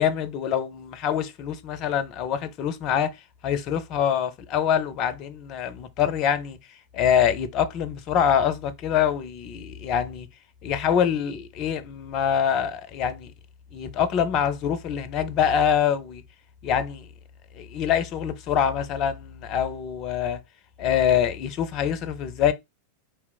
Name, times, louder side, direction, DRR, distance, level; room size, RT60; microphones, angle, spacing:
voice 1, 0.0-3.1 3.4-6.6 6.9-10.3 10.6-13.3 13.7-16.2 16.6-17.1 17.5-20.4 20.8-22.5, left 8 dB, 35° left, 0.6 m, -25 dB
4.7 x 3.0 x 3.4 m
figure-of-eight pair, 90°, 0 cm